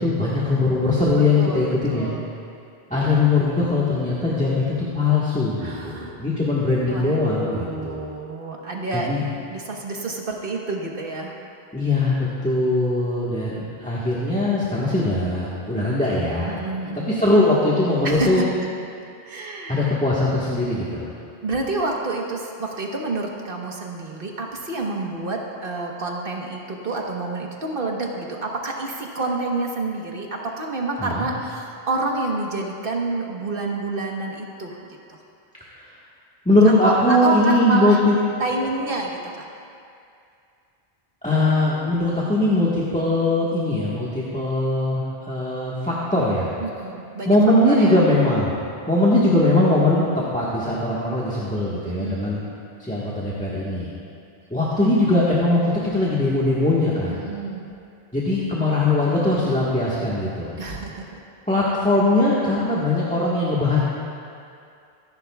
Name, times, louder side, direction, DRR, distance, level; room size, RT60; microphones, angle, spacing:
voice 1, 0.0-2.1 2.9-8.1 8.9-9.2 11.7-16.5 17.1-18.4 19.7-21.1 31.0-31.3 35.7-35.8 36.4-38.2 41.2-46.5 47.2-48.5 48.9-52.4 52.8-53.9 54.5-57.3 58.1-60.5 61.5-63.8, left 2 dB, 5° left, -8 dB, 1.4 m, -20 dB
voice 2, 1.4-2.3 5.6-6.2 6.9-9.1 9.5-11.4 16.5-17.1 18.0-18.3 19.3-20.0 21.4-34.8 35.1-35.2 36.6-38.0 38.4-39.5 46.6-47.4 47.7-48.0 51.9-52.4 57.1-57.6 60.6-61.2, right 2 dB, 60° right, 0 dB, 1.4 m, -28 dB
25.5 x 10.5 x 2.4 m, 2.5 s
omnidirectional pair, 1.1 m